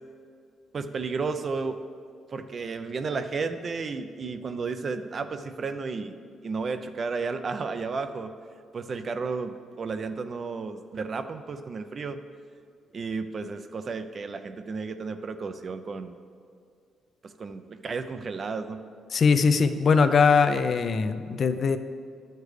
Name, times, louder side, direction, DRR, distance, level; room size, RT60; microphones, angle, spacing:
voice 1, 0.7-1.9 2.3-6.2 6.4-8.3 8.7-12.2 12.9-16.2 17.2-18.8, right 4 dB, 45° right, 9 dB, 0.4 m, -33 dB
voice 2, 19.1-21.8, left 5 dB, 50° left, 9 dB, 0.5 m, -21 dB
10.5 x 6.6 x 3.3 m, 2.2 s
cardioid pair, 90°, 0 cm